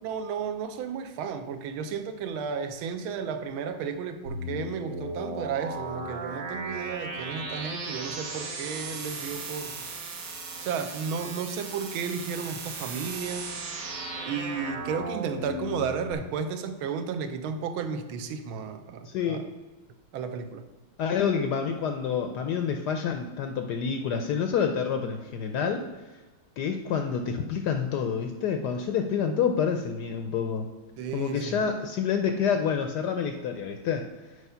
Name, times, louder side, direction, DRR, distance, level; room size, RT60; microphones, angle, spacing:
voice 1, 0.0-9.8 10.6-13.5 14.2-19.5 20.1-20.6 31.0-31.7, right 6 dB, 80° right, 8 dB, 1.5 m, -33 dB
sound 1, 4.2-16.1, right 2 dB, 50° right, 1.2 m, -36 dB
voice 2, 19.0-19.4 21.0-25.8 26.6-30.7 31.1-34.0, left 7 dB, 70° left, 6 dB, 1.0 m, -28 dB
8.2 x 4.8 x 5.5 m, 1.3 s
omnidirectional pair, 2.3 m